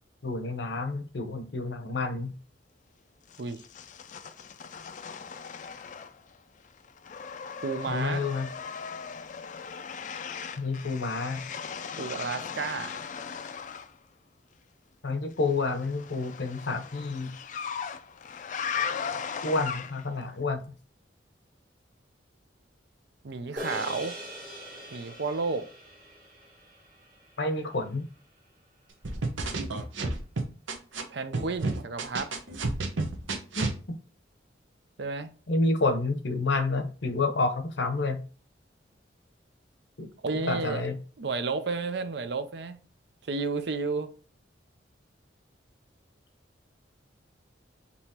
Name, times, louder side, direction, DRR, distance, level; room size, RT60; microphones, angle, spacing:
voice 1, 0.2-2.3 7.9-8.5 10.6-11.5 15.0-17.4 19.4-20.7 27.4-28.1 33.6-33.7 35.5-38.3 40.0-41.0, left 3 dB, 65° left, 0.7 m, -29 dB
sound 1, 3.3-6.4 6.6-13.9 15.5-20.2, left 6 dB, 40° left, 0.3 m, -38 dB
voice 2, 7.6-8.2 12.0-13.0 23.2-24.2 24.9-25.7 31.1-32.3 35.0-35.3 40.2-40.9 41.2-42.8 43.2-44.1, right 4 dB, 60° right, 0.5 m, -32 dB
sound 2, 23.6-28.1, equal, 40° right, 1.7 m, -42 dB
sound 3, 29.0-31.0 31.3-33.8, right 3 dB, 85° right, 0.9 m, -30 dB
5.4 x 3.0 x 2.8 m
head